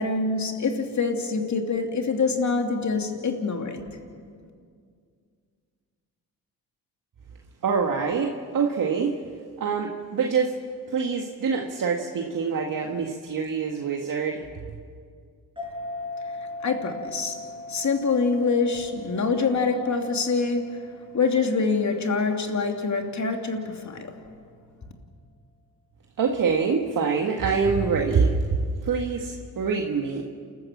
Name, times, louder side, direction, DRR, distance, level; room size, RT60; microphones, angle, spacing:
voice 1, 0.0-3.8 16.6-17.4 17.7-20.6 21.1-24.1, left 4 dB, 45° left, 4 dB, 2.9 m, -25 dB
voice 2, 7.6-9.1 9.6-10.5 10.9-14.4 26.2-28.5 28.8-30.2, right 5 dB, 50° right, 1 dB, 1.9 m, -25 dB
sound 1, 15.6-22.6, left 2 dB, 15° right, 4.7 m, -40 dB
29.0 x 14.0 x 7.4 m, 2.2 s
supercardioid pair, 60°, 40 cm